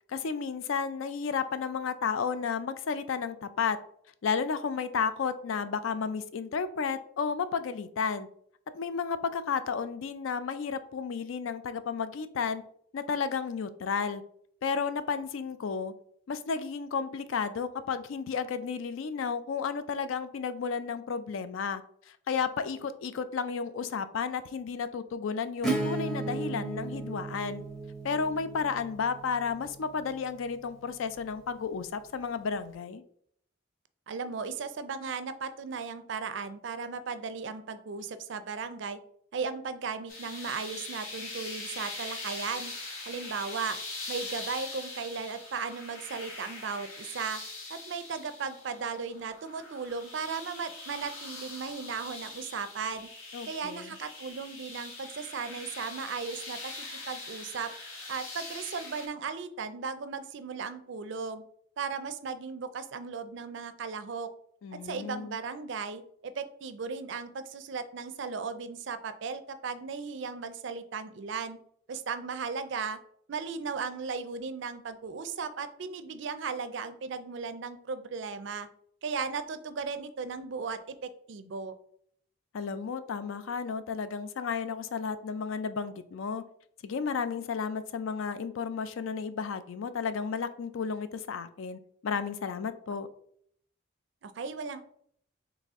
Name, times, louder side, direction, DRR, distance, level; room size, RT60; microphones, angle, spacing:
voice 1, 0.1-3.8 4.2-8.3 8.7-12.6 12.9-14.2 14.6-15.9 16.3-27.6 28.0-33.0 53.3-54.0 64.6-65.4 82.5-86.4 86.8-93.1, left 6 dB, 70° left, 12 dB, 0.4 m, -32 dB
Acoustic guitar / Strum, 25.6-31.1, right 3 dB, 5° left, 0.6 m, -36 dB
voice 2, 34.1-39.0 39.3-42.7 43.0-43.8 44.1-47.4 47.7-53.1 53.4-57.7 58.1-61.4 61.8-64.3 64.8-71.6 71.9-73.0 73.3-78.7 79.0-81.7 94.2-94.8, right 5 dB, 60° right, 11 dB, 0.4 m, -36 dB
sound 1, 40.1-59.1, left 2 dB, 90° left, 1.4 m, -42 dB
4.1 x 3.2 x 3.5 m, 0.66 s
head